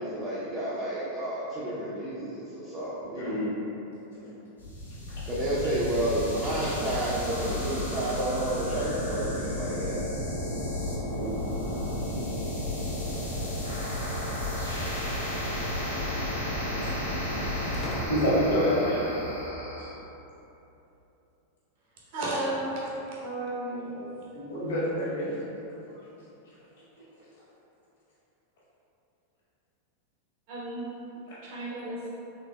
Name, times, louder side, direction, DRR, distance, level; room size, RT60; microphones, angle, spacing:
voice 1, 0.0-3.4 5.3-10.0 25.9-26.0, right 1 dB, 20° right, -9 dB, 0.6 m, -31 dB
voice 2, 3.1-3.5 6.6-6.8 11.1-11.3 12.0-12.2 18.0-19.0 23.9-24.0 24.3-25.3, equal, 60° left, -9 dB, 1.2 m, -27 dB
sound 1, 4.6-19.9, left 1 dB, 85° left, 1.0 m, -32 dB
sound 2, 14.9-15.3 17.7-18.8, left 1 dB, 20° left, 0.3 m, -41 dB
voice 3, 22.1-22.9 23.2-23.9 30.5-30.9 31.4-32.1, right 1 dB, 50° right, -6 dB, 1.0 m, -33 dB
3.9 x 3.4 x 2.3 m, 2.9 s
figure-of-eight pair, 90°, 0 cm